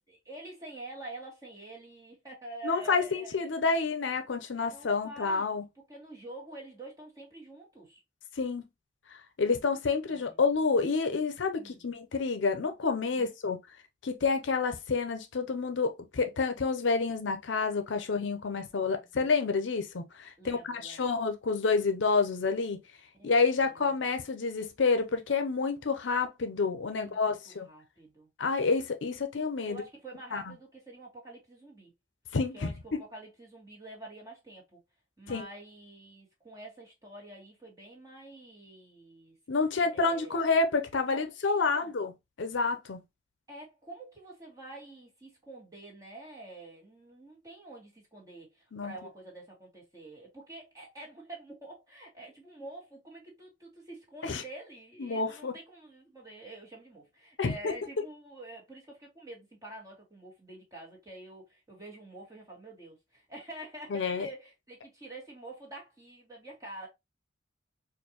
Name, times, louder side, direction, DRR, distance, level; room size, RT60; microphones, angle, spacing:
voice 1, 0.1-3.4 4.7-5.5 5.9-8.0 10.1-10.4 11.6-11.8 13.1-13.3 18.9-19.1 20.4-21.2 23.1-23.9 26.5-28.3 29.7-31.9 32.5-34.8 35.2-39.4 39.8-40.4 41.0-41.9 43.5-66.9, right 2 dB, 20° right, 1.6 m, -47 dB
voice 2, 2.6-5.6 8.4-8.6 9.4-13.6 14.0-22.8 23.2-27.7 28.4-29.8 30.3-30.5 32.3-33.0 35.3-35.4 39.5-42.1 42.4-43.0 48.7-48.9 54.2-54.4 55.0-55.5 57.4-57.7 63.9-64.3, left 4 dB, 70° left, 0.6 m, -29 dB
4.4 x 2.5 x 2.9 m
head